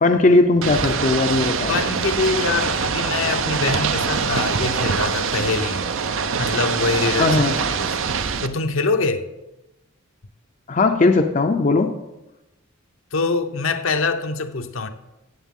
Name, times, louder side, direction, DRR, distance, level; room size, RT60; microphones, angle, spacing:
voice 1, 0.0-1.8 7.2-7.6 10.7-11.9, left 3 dB, 35° left, 0.5 m, -18 dB
Ocean / Boat Water vehicle, 0.6-8.5, right 6 dB, 65° right, 0.6 m, -24 dB
voice 2, 1.7-5.8 6.4-8.0 8.4-9.3 13.1-14.9, left 4 dB, 70° left, 0.7 m, -24 dB
14.5 x 8.1 x 3.7 m
head